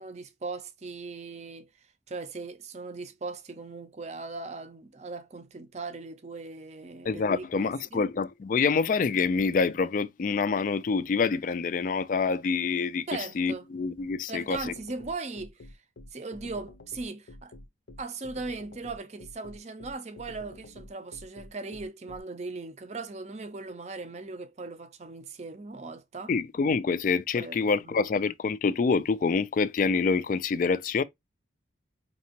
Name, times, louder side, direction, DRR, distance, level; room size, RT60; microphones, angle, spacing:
voice 1, 0.0-1.7 2.1-8.1 13.1-13.7 14.3-15.6 16.1-17.5 18.0-26.3 27.4-28.1, right 3 dB, 35° right, 0.5 m, -39 dB
voice 2, 7.1-13.1 13.4-14.7 26.3-31.0, left 5 dB, 45° left, 0.3 m, -26 dB
sound 1, 14.5-22.2, left 1 dB, 90° left, 0.7 m, -48 dB
5.1 x 2.8 x 2.8 m
head